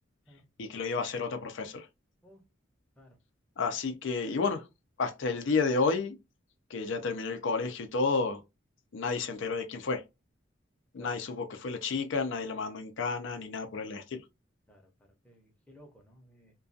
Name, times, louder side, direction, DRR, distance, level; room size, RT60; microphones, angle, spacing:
voice 1, 0.6-1.9 3.6-4.6 5.0-6.1 6.7-8.4 8.9-10.0 10.9-14.2, left 4 dB, 70° left, 0.5 m, -31 dB
voice 2, 15.2-16.5, equal, 5° left, 0.6 m, -56 dB
2.3 x 2.3 x 2.6 m
head